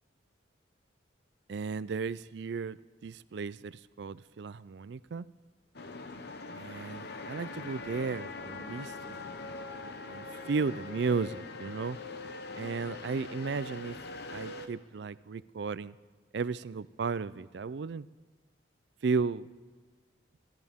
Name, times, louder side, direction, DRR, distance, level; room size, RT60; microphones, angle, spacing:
voice 1, 1.5-2.8 3.0-5.3 6.5-9.2 10.1-12.0 12.6-14.0 14.3-15.9 16.3-18.1 19.0-19.5, right 5 dB, 65° right, 18 dB, 0.4 m, -34 dB
sound 1, 5.7-14.7, left 3 dB, 60° left, 1.0 m, -42 dB
28.5 x 13.5 x 3.6 m, 1.5 s
head